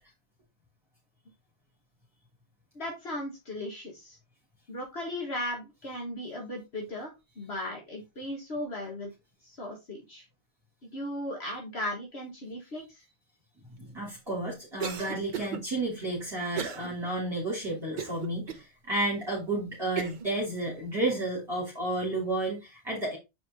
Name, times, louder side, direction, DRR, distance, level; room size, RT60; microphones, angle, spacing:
voice 1, 2.8-4.2 4.7-9.1 9.4-10.3 10.8-13.0, left 1 dB, 65° left, 0 dB, 1.9 m, -37 dB
voice 2, 13.8-23.2, right 2 dB, 20° right, -4 dB, 2.7 m, -32 dB
Cough, 14.8-15.6 16.5-16.9 17.3-17.4 18.0-18.6 19.2-19.3 20.0-20.3, right 8 dB, 45° right, 0.9 m, -34 dB
7.1 x 4.7 x 3.7 m, 0.23 s
omnidirectional pair, 1.1 m